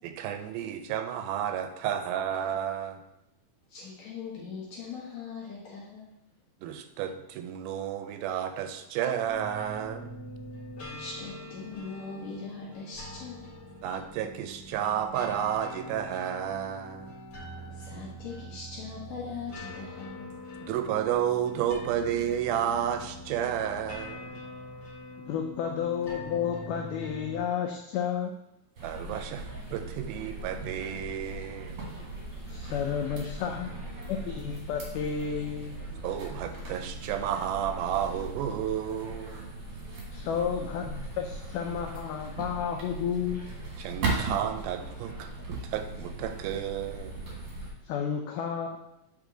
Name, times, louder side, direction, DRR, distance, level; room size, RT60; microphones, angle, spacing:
voice 1, 0.0-3.0 6.6-10.1 13.8-17.2 20.6-24.4 28.8-31.8 36.0-39.4 43.8-47.1, right 9 dB, 85° right, 8 dB, 2.4 m, -32 dB
voice 2, 3.7-6.1 8.6-8.8 10.8-13.5 17.6-20.4, left 5 dB, 70° left, -4 dB, 1.8 m, -41 dB
sound 1, 9.2-27.4, equal, 50° left, 1.2 m, -43 dB
voice 3, 25.2-28.3 32.5-33.7 34.1-35.8 40.1-43.4 47.8-48.8, left 7 dB, 90° left, 3 dB, 1.8 m, -31 dB
sound 2, 28.7-47.7, right 2 dB, 60° right, 1.5 m, -38 dB
8.1 x 3.5 x 3.8 m, 0.89 s
omnidirectional pair, 4.2 m